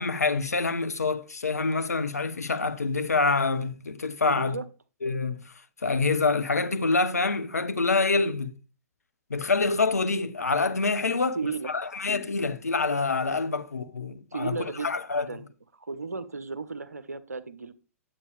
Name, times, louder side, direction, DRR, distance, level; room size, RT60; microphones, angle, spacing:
voice 1, 0.0-4.6 5.0-5.5 5.8-8.6 9.3-11.4 11.7-15.3, left 3 dB, 85° left, 0.8 m, -26 dB
voice 2, 4.2-4.6 11.3-11.7 14.3-14.9 15.1-15.5 15.7-17.7, right 4 dB, 85° right, 1.0 m, -34 dB
10.0 x 8.3 x 3.3 m
figure-of-eight pair, 115°, 8 cm